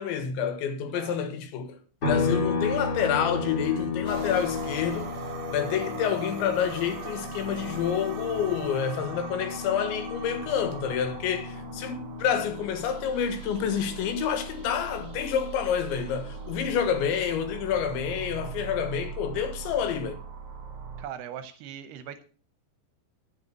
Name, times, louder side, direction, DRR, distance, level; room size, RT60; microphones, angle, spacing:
voice 1, 0.0-5.1 5.5-20.2, left 8 dB, 80° left, 3.7 m, -28 dB
sound 1, 2.0-15.6 15.9-18.1, left 5 dB, 30° left, 2.6 m, -34 dB
sound 2, 4.1-21.0, right 5 dB, 50° right, 2.0 m, -40 dB
voice 2, 21.0-22.2, right 9 dB, 75° right, 2.5 m, -40 dB
11.0 x 8.2 x 6.4 m
omnidirectional pair, 5.3 m